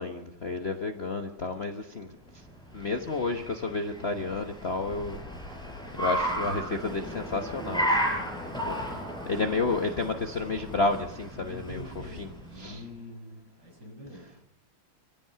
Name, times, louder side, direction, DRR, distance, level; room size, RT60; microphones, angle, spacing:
voice 1, 0.0-2.4 2.7-5.7 6.0-8.0 8.4-8.8 9.3-11.8 12.2-12.3 12.6-12.8, left 3 dB, 35° left, 5 dB, 1.1 m, -31 dB
Car, 2.4-12.7, equal, ahead, 5.3 m, -34 dB
voice 2, 11.4-14.2, left 1 dB, 50° right, 0 dB, 7.3 m, -46 dB
26.5 x 15.5 x 6.8 m, 0.76 s
omnidirectional pair, 2.3 m